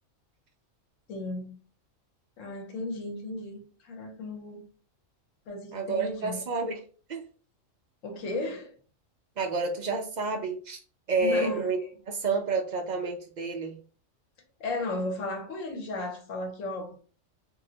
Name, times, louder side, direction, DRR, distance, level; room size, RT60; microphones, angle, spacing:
voice 1, 1.1-1.6 2.4-4.6 5.5-6.4 8.0-8.7 11.2-11.9 14.6-17.0, left 2 dB, 85° left, 1.2 m, -35 dB
voice 2, 5.7-6.8 7.1-7.2 9.4-10.8 11.1-11.8 12.1-13.8, right 3 dB, 60° right, 0.5 m, -29 dB
3.1 x 2.6 x 2.7 m
omnidirectional pair, 1.3 m